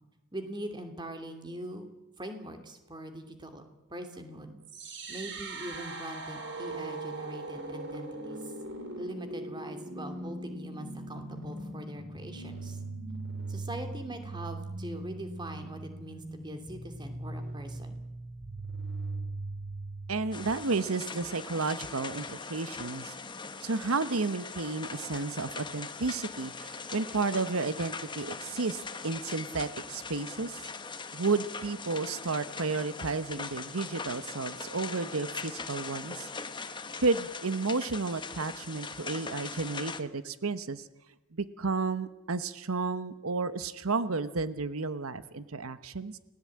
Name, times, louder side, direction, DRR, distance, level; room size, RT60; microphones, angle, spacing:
voice 1, 0.3-1.9 2.2-8.5 9.0-12.8 13.5-18.0, right 1 dB, 20° right, 7 dB, 2.8 m, -42 dB
sound 1, 4.6-20.6, right 2 dB, 60° right, 4.0 m, -40 dB
voice 2, 20.1-23.2 23.6-30.7 31.1-36.3 37.0-40.9 41.3-46.2, right 4 dB, 85° right, 13 dB, 1.0 m, -32 dB
sound 2, 20.3-40.0, left 4 dB, 20° left, 1.3 m, -41 dB
29.5 x 18.5 x 8.6 m, 1.1 s
head